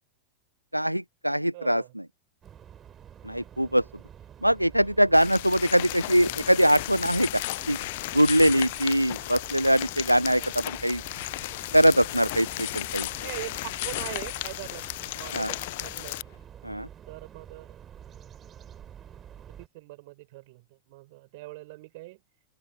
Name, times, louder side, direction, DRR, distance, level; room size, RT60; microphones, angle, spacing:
voice 1, 0.7-1.8 3.2-3.8 4.4-7.8 8.1-11.0 11.7-13.1 15.3-15.5 16.6-16.9, equal, 90° right, 0.8 m, -22 dB
voice 2, 1.5-2.0 10.4-10.5 13.2-16.2 17.1-17.8 19.5-22.2, right 22 dB, 50° right, 6.2 m, -42 dB
sound 1, 2.4-19.7, right 9 dB, 25° right, 4.0 m, -48 dB
sound 2, 5.1-16.2, left 19 dB, 50° left, 0.7 m, -34 dB
open air
figure-of-eight pair, 90°, 0 cm